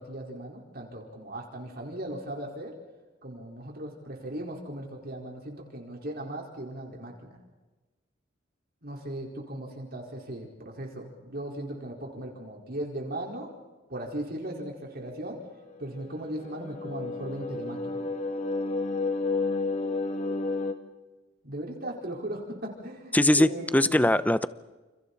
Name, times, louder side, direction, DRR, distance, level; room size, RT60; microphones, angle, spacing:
voice 1, 0.0-2.7 3.2-7.4 8.8-13.5 13.9-15.4 15.8-18.0 21.4-24.0, right 1 dB, 55° right, 0 dB, 4.6 m, -37 dB
sound 1, 15.7-20.7, left 3 dB, 40° left, 2.0 m, -31 dB
voice 2, 23.1-24.5, left 1 dB, 10° left, 14 dB, 0.8 m, -21 dB
29.5 x 29.0 x 4.3 m, 1.2 s
head